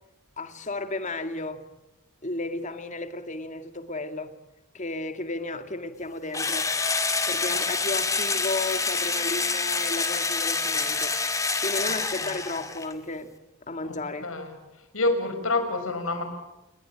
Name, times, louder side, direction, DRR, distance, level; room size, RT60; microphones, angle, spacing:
voice 1, 0.4-1.6 2.2-4.3 4.7-6.7 7.3-11.1 11.6-13.3 13.7-14.3, left 2 dB, 35° left, 2.3 m, -33 dB
Engine / Drill, 6.3-12.9, left 4 dB, 15° left, 2.3 m, -27 dB
voice 2, 14.2-14.5 14.9-16.2, left 2 dB, 75° left, 6.2 m, -27 dB
29.0 x 21.5 x 8.9 m
head